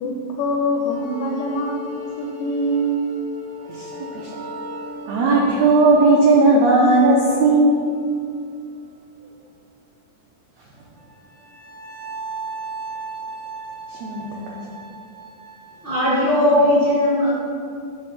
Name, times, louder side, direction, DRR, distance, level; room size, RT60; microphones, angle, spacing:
voice 1, 0.0-3.0, equal, 85° left, 0 dB, 1.8 m, -24 dB
sound 1, 0.9-8.8 10.8-16.0, right 1 dB, 55° right, 0.6 m, -36 dB
voice 2, 3.7-4.3 5.1-7.7 13.9-14.4, right 2 dB, 90° right, -3 dB, 1.5 m, -16 dB
voice 3, 15.8-17.3, left 1 dB, 55° left, -9 dB, 0.5 m, -17 dB
8.1 x 3.6 x 6.0 m, 2.4 s
omnidirectional pair, 4.2 m